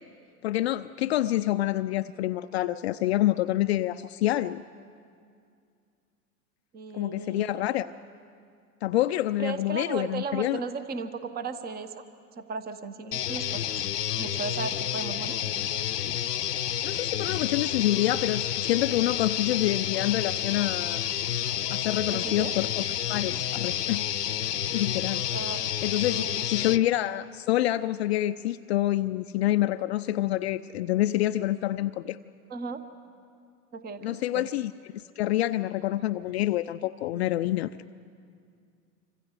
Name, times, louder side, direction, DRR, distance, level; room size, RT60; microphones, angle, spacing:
voice 1, 0.4-4.6 6.9-7.9 8.8-10.6 16.8-21.0 21.7-22.8 23.1-24.1 24.7-25.3 25.8-32.2 34.0-37.7, left 14 dB, 45° left, 11 dB, 0.5 m, -27 dB
voice 2, 6.7-7.8 9.4-12.0 12.4-13.7 14.2-15.4 22.1-22.5 25.3-25.6 26.1-26.8 32.5-32.8 33.7-34.5, right 4 dB, 20° right, 11 dB, 1.1 m, -36 dB
sound 1, 13.1-26.8, left 10 dB, 75° left, 0.8 m, -30 dB
27.5 x 25.0 x 4.9 m, 2.3 s
figure-of-eight pair, 90°, 47 cm